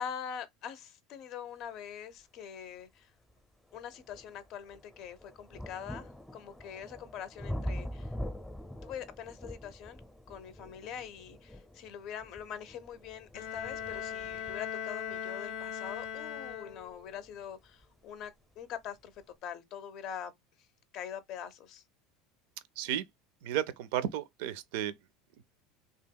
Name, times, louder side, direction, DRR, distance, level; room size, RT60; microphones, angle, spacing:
voice 1, 0.0-3.1 3.7-8.1 8.8-10.0 10.3-20.3 20.9-21.8, left 8 dB, 45° left, 0.5 m, -43 dB
sound 1, 2.6-2.7 3.3-18.0 18.9-19.0, equal, 5° left, 0.6 m, -44 dB
Bowed string instrument, 13.3-17.1, left 8 dB, 85° left, 0.7 m, -39 dB
voice 2, 23.4-24.9, right 11 dB, 70° right, 0.4 m, -33 dB
2.8 x 2.7 x 2.2 m
supercardioid pair, 150°, 0 cm